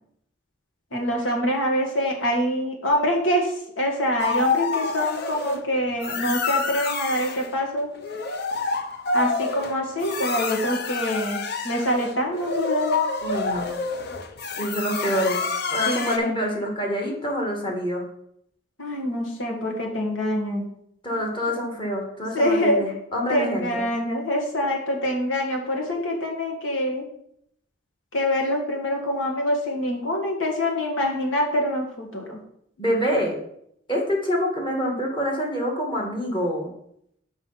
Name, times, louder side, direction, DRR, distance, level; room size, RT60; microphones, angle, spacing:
voice 1, 0.9-7.9 9.1-12.9 15.9-16.4 18.8-20.6 21.2-21.3 22.3-22.8 23.3-27.0 28.1-32.4, equal, 85° left, 1 dB, 1.9 m, -25 dB
sound 1, 4.2-5.6 6.0-7.5 7.9-16.2, left 4 dB, 55° left, 0.7 m, -28 dB
voice 2, 13.2-13.7 14.6-15.4 15.7-18.0 21.0-23.8 32.8-33.3 33.9-36.7, equal, 25° left, 0 dB, 1.6 m, -26 dB
5.9 x 4.9 x 5.6 m, 0.72 s
head